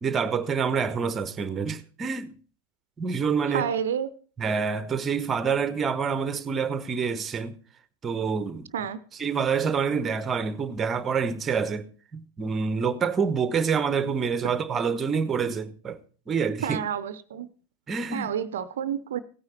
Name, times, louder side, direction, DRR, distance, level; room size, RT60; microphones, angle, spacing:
voice 1, 0.0-2.3 3.0-3.7 4.4-7.6 8.0-8.7 9.2-16.0 16.3-16.8 17.9-18.3, right 6 dB, 20° right, 1.0 m, -27 dB
voice 2, 3.5-4.1 8.7-9.0 16.6-17.5 18.1-19.2, right 8 dB, 60° right, 0.7 m, -29 dB
16.5 x 9.6 x 4.3 m
figure-of-eight pair, 90°, 0 cm